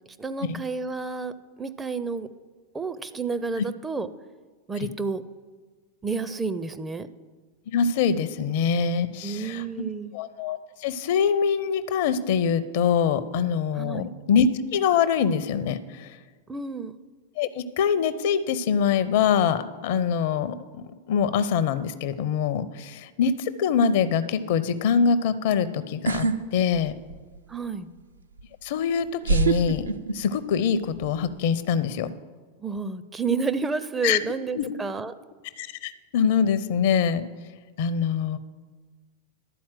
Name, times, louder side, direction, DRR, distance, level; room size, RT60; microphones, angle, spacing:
voice 1, 0.2-1.3 1.6-2.3 2.7-4.1 4.7-5.2 6.0-7.1 9.2-10.1 13.7-14.1 16.5-16.9 27.5-27.9 32.6-35.1, right 4 dB, 15° right, 11 dB, 0.4 m, -30 dB
voice 2, 7.7-9.6 10.1-16.1 17.4-26.3 26.5-27.0 28.6-29.9 30.1-32.1 34.0-34.2 34.5-34.7 35.6-37.3 37.8-38.4, left 7 dB, 50° left, 14 dB, 0.5 m, -24 dB
sound 1, 26.1-26.4 26.7-27.4 28.4-28.5 29.2-30.6 30.9-31.3, right 4 dB, 75° right, 0.5 m, -24 dB
12.0 x 4.3 x 7.4 m, 1.4 s
figure-of-eight pair, 90°, 0 cm